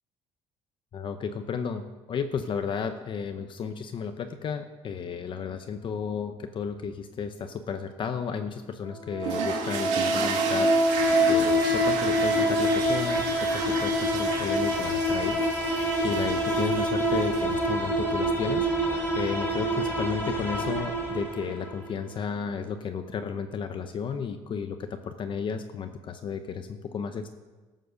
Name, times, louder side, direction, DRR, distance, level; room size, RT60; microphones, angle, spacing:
voice 1, 0.9-18.7 19.1-27.3, left 6 dB, 45° left, 7 dB, 0.8 m, -33 dB
sound 1, 8.9-21.9, equal, 15° left, 3.4 m, -26 dB
sound 2, 9.2-17.7, right 6 dB, 85° right, 1.9 m, -34 dB
13.5 x 7.7 x 6.4 m, 1.3 s
cardioid pair, 115°, 12 cm